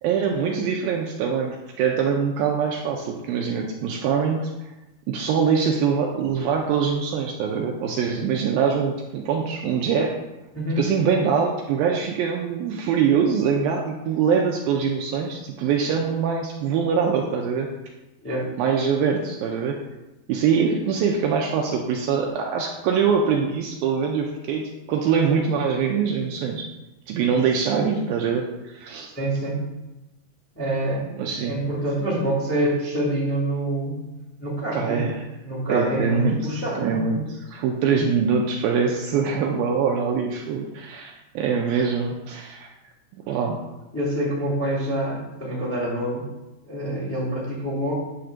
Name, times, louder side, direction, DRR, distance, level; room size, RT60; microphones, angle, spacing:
voice 1, 0.0-4.7 5.1-10.2 10.8-17.7 18.6-19.8 20.3-26.7 27.1-29.1 31.2-31.6 34.7-35.2 35.7-42.7 43.1-43.6, right 6 dB, 80° right, 1 dB, 2.2 m, -23 dB
voice 2, 29.1-29.6 30.5-31.1 31.4-34.0 34.4-35.0 35.4-37.0 43.9-46.3 46.7-47.9, right 1 dB, 15° left, -5 dB, 0.4 m, -26 dB
9.9 x 3.4 x 6.6 m, 1.0 s
omnidirectional pair, 4.8 m